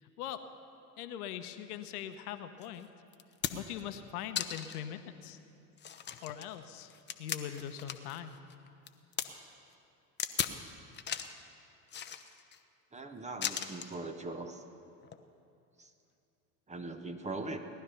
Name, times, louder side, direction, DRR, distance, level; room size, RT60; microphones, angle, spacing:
voice 1, 0.0-0.5 1.0-2.9 3.5-5.4 6.2-8.4, left 10 dB, 70° left, 9 dB, 1.0 m, -42 dB
sound 1, 2.6-2.7 3.1-3.8 4.4-4.8 5.3-5.4 5.8-8.2 8.5-9.3 10.2-10.6 10.9-11.4 11.9-12.6 13.4-13.9 15.0-15.2, left 8 dB, 25° left, 0.8 m, -37 dB
voice 2, 12.9-14.6 15.8-15.9 16.7-17.6, right 2 dB, 15° right, 6 dB, 1.1 m, -40 dB
18.0 x 11.5 x 5.7 m, 2.6 s
hypercardioid pair, 80°, 46 cm